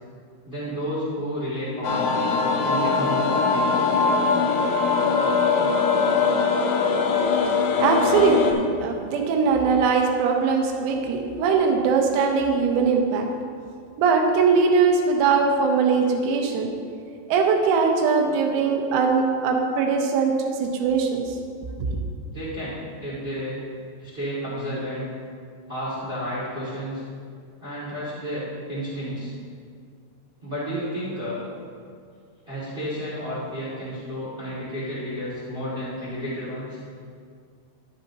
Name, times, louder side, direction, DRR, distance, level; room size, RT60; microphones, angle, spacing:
voice 1, 0.4-2.2 2.6-3.9 21.9-22.0 22.3-23.6 24.0-25.1 25.7-27.0 27.6-29.3 30.4-31.4 32.4-36.8, equal, 45° right, -9 dB, 0.7 m, -31 dB
sound 1, 1.8-8.5, left 4 dB, 80° left, 2.8 m, -21 dB
voice 2, 7.8-13.3 14.0-16.7 17.3-21.4 21.8-22.0, right 5 dB, 80° right, 3 dB, 3.0 m, -21 dB
11.5 x 8.0 x 2.9 m, 2.2 s
omnidirectional pair, 5.1 m